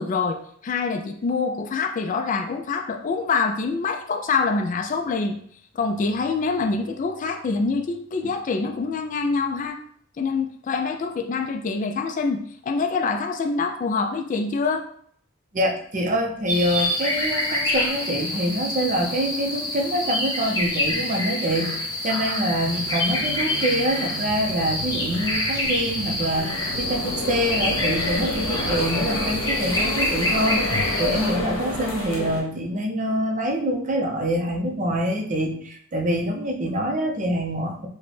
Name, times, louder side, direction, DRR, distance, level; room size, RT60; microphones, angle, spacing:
voice 1, 0.0-5.4 5.7-9.8 10.2-14.9, left 4 dB, 40° left, 4 dB, 0.3 m, -25 dB
voice 2, 15.5-37.9, equal, 35° right, 2 dB, 0.5 m, -25 dB
sound 1, 16.5-31.3, left 1 dB, 20° left, 0.9 m, -27 dB
sound 2, 22.6-29.4, right 6 dB, 90° right, 0.3 m, -38 dB
sound 3, 26.4-32.4, left 2 dB, 70° left, 1.0 m, -29 dB
4.9 x 2.2 x 3.2 m, 0.62 s
head